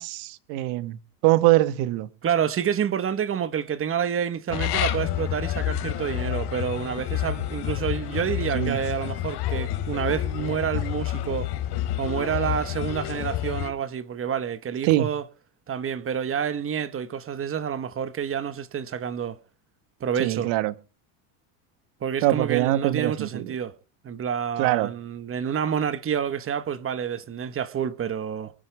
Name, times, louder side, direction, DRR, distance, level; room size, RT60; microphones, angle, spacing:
voice 1, 0.0-2.1 8.5-8.8 14.8-15.1 20.2-20.7 22.2-23.5 24.6-24.9, right 16 dB, 70° right, 1.5 m, -23 dB
voice 2, 2.2-11.5 12.0-15.3 15.7-19.4 20.0-20.5 22.0-23.7 24.0-28.5, right 8 dB, 25° right, 1.1 m, -28 dB
sound 1, 4.5-13.7, left 12 dB, 50° left, 3.0 m, -29 dB
24.0 x 9.8 x 3.3 m
cardioid pair, 135°, 49 cm